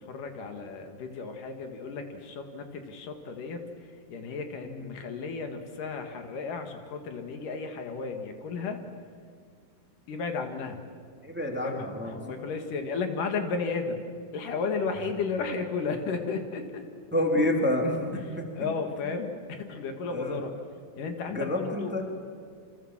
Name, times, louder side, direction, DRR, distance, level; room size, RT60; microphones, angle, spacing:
voice 1, 0.0-8.8 10.1-10.8 11.6-14.0 14.3-16.8 18.1-18.2 18.5-20.6 21.0-21.9, left 4 dB, 70° left, 5 dB, 3.3 m, -34 dB
voice 2, 11.2-12.1 17.1-18.7 20.1-20.4 21.3-22.0, left 1 dB, 5° right, 1 dB, 2.3 m, -28 dB
28.5 x 25.5 x 7.4 m, 2.1 s
omnidirectional pair, 3.9 m